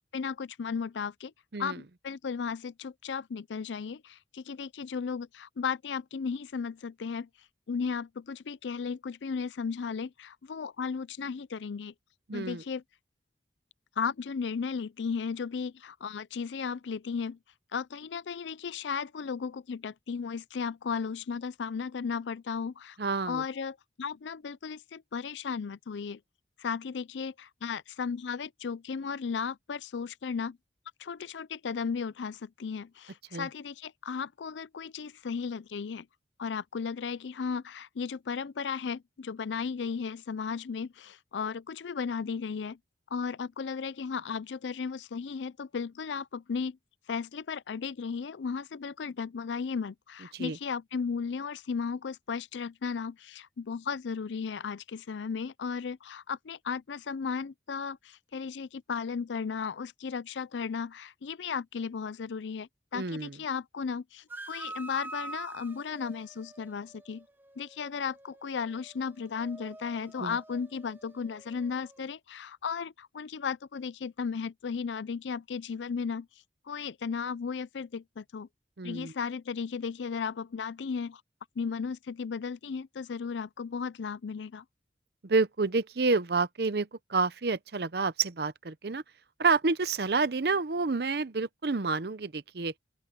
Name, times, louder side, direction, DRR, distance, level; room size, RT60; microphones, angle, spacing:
voice 1, 0.0-1.3 1.6-7.3 7.7-11.9 12.3-12.8 14.0-17.4 17.7-23.0 23.3-26.2 26.6-30.6 31.0-36.1 36.4-42.8 43.1-46.8 47.1-67.2 67.6-76.3 76.7-78.5 78.8-81.2 81.6-84.6, left 6 dB, 85° left, 0.5 m, -35 dB
voice 2, 12.3-12.6 23.0-23.4 33.3-33.5 50.3-50.6 62.9-63.4 70.2-70.4 78.8-79.1 85.2-89.0 89.4-92.7, right 4 dB, 60° right, 0.7 m, -29 dB
sound 1, 64.3-72.0, right 2 dB, 10° right, 0.8 m, -47 dB
open air
head